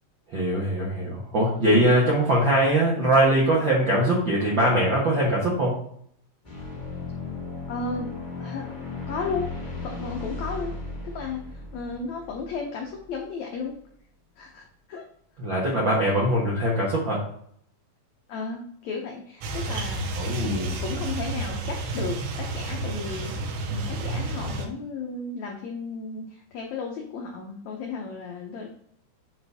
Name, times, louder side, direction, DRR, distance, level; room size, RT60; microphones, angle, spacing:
voice 1, 0.3-5.8 15.4-17.2 20.1-20.7, right 1 dB, 65° right, -5 dB, 1.1 m, -22 dB
sound 1, 6.4-13.1, left 3 dB, 25° left, 1.0 m, -36 dB
voice 2, 7.7-8.1 8.4-8.7 9.1-9.5 9.8-10.7 11.0-13.7 14.4-15.0 18.3-20.1 20.4-23.3 23.7-28.7, left 4 dB, 85° left, 0 dB, 1.6 m, -34 dB
sound 2, 19.4-24.7, right 2 dB, 80° right, 2.9 m, -31 dB
7.6 x 4.1 x 3.5 m, 0.65 s
omnidirectional pair, 4.3 m